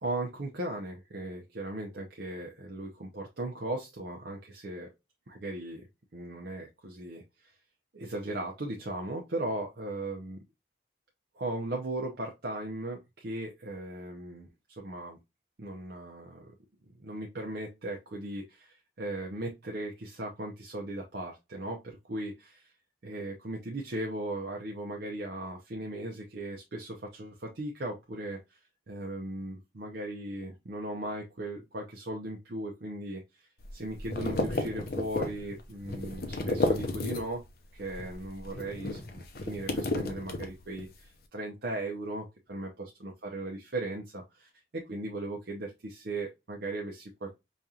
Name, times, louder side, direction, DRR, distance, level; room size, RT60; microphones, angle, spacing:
voice 1, 0.0-4.9 5.3-5.9 6.1-7.5 7.9-10.4 11.3-15.2 15.6-16.5 17.0-22.7 23.0-28.6 28.9-37.4 37.7-47.3, right 1 dB, 60° right, -1 dB, 0.6 m, -37 dB
sound 1, 33.6-37.5 37.8-40.9, left 2 dB, 55° left, 0.6 m, -33 dB
5.2 x 2.4 x 2.7 m, 0.23 s
head